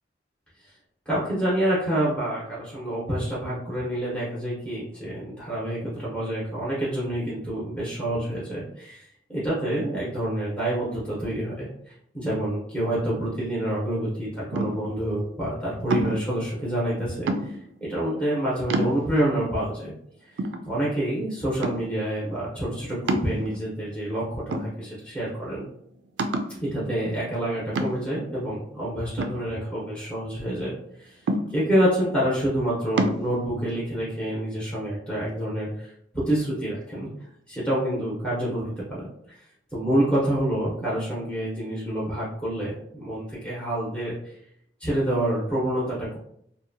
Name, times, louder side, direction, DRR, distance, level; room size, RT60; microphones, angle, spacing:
voice 1, 1.1-11.7 12.1-17.6 17.9-19.9 20.7-25.7 26.6-30.7 31.0-31.2 31.5-37.1 37.5-39.0 39.7-44.3 44.8-46.2, right 1 dB, 5° left, -7 dB, 0.7 m, -27 dB
sound 1, 14.5-15.0 15.9-16.3 17.3-17.8 18.3-18.4 18.7-19.3 19.9-20.0 20.4-21.1 21.6-22.0 23.1-23.8 24.5-25.2 25.5-25.6 26.2-26.6 27.8-28.2 29.2-30.1 31.3-31.9 33.0-33.2, right 2 dB, 80° right, 0.3 m, -28 dB
2.7 x 2.1 x 2.6 m, 0.72 s
head